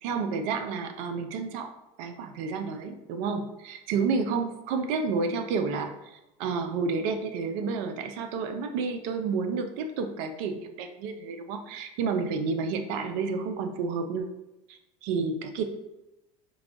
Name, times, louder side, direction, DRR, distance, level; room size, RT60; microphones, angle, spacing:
voice 1, 0.0-1.7 2.0-14.3 14.7-15.6, right 4 dB, 65° right, 6 dB, 0.5 m, -30 dB
4.6 x 2.3 x 2.5 m, 0.94 s
hypercardioid pair, 85°, 18 cm